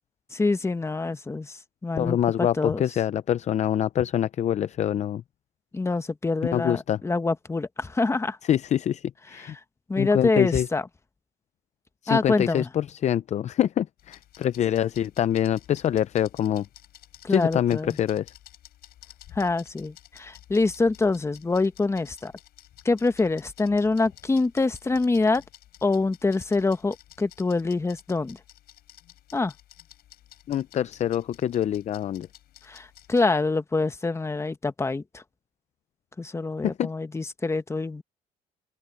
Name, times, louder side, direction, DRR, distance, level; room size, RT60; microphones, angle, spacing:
voice 1, 0.3-1.6 1.8-2.8 5.7-8.4 9.9-10.8 12.1-12.7 17.2-18.0 19.4-22.3 22.8-25.4 25.8-28.4 29.3-29.5 32.7-35.2 36.2-38.0, left 3 dB, 15° left, 1.2 m, -25 dB
voice 2, 2.0-5.2 6.5-7.0 8.4-9.6 10.0-10.7 12.0-16.7 17.3-18.3 30.5-32.3 36.6-36.9, left 10 dB, 45° left, 0.5 m, -25 dB
sound 1, 14.0-33.2, left 12 dB, 70° left, 5.0 m, -52 dB
open air
cardioid pair, 110°, 17 cm